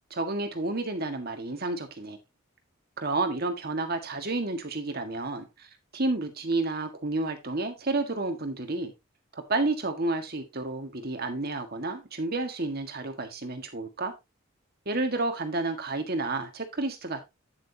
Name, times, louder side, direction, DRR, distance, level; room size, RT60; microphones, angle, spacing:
voice 1, 0.1-2.2 3.0-8.9 9.3-14.1 14.9-17.2, right 2 dB, 50° right, 6 dB, 1.7 m, -30 dB
9.3 x 7.6 x 2.8 m, 0.23 s
head